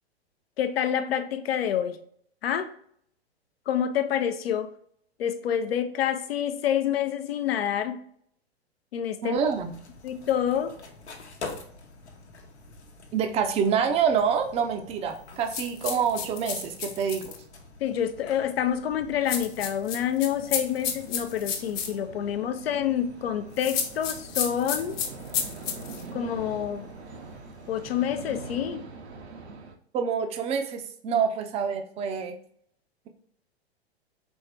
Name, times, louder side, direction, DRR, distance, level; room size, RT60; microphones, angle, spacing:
voice 1, 0.6-2.0 2.4-2.7 3.7-4.7 5.2-8.1 8.9-9.4 10.0-10.8 17.8-25.0 26.1-26.9 27.7-28.8 31.1-31.2, left 9 dB, 65° left, 0.6 m, -27 dB
voice 2, 9.2-9.7 13.1-17.3 29.9-32.3, right 7 dB, 20° right, 0.5 m, -26 dB
sound 1, 9.3-28.5, left 3 dB, 80° left, 1.0 m, -48 dB
sound 2, 15.5-17.4 19.3-21.9 23.6-26.0, left 7 dB, 45° left, 1.0 m, -31 dB
sound 3, 20.3-29.7, right 4 dB, 80° right, 0.8 m, -44 dB
4.4 x 3.2 x 3.4 m
hypercardioid pair, 110°, 33 cm